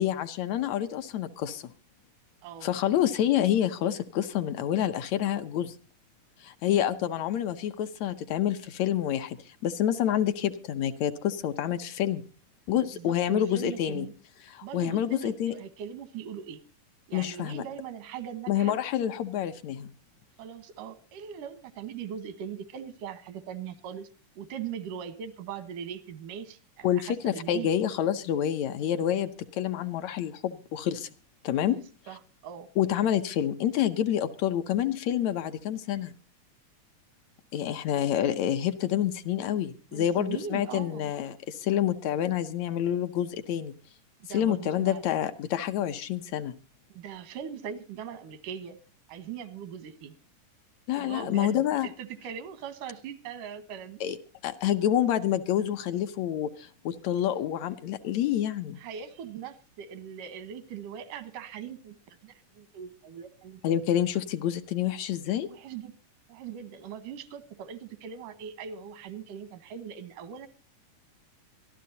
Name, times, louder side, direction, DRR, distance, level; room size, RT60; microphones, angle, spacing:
voice 1, 0.0-1.7 2.6-5.8 6.4-9.4 9.6-12.2 12.7-14.1 14.4-15.5 17.1-17.6 18.5-19.9 26.8-31.1 31.4-31.8 32.8-36.1 37.5-43.7 44.3-46.5 50.9-51.9 54.0-54.2 54.4-58.8 63.6-65.5, left 10 dB, 70° left, 1.9 m, -28 dB
voice 2, 2.4-2.7 12.9-14.1 14.6-16.6 17.1-18.8 20.4-24.1 24.4-27.7 31.7-32.7 39.9-41.1 44.3-45.0 46.9-48.8 49.1-50.2 51.0-54.0 58.8-62.0 62.2-63.8 65.4-65.9 66.3-70.5, right 8 dB, 90° right, 2.8 m, -40 dB
25.5 x 12.5 x 2.7 m
omnidirectional pair, 3.6 m